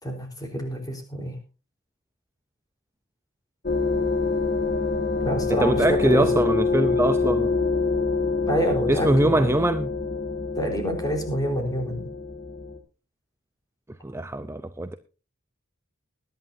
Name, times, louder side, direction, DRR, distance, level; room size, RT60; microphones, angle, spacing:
voice 1, 0.0-1.4 5.2-6.3 8.5-9.6 10.6-12.0, equal, 20° left, 4.1 m, -27 dB
sound 1, 3.6-12.8, left 4 dB, 45° left, 1.8 m, -26 dB
voice 2, 5.6-7.5 8.9-9.9 14.0-15.0, right 1 dB, 10° right, 0.6 m, -23 dB
21.0 x 11.0 x 2.7 m
head